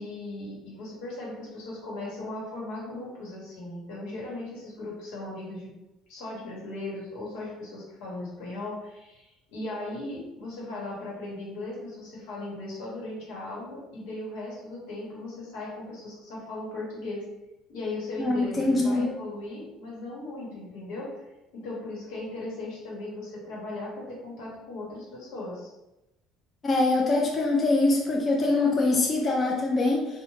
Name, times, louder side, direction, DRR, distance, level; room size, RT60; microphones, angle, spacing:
voice 1, 0.0-5.7 6.1-17.2 17.7-21.1 21.5-25.7, left 2 dB, 85° left, -4 dB, 1.0 m, -37 dB
voice 2, 18.2-19.1 26.6-30.1, left 2 dB, 30° left, -1 dB, 0.4 m, -23 dB
2.6 x 2.1 x 3.0 m, 0.98 s
cardioid pair, 120°, 0 cm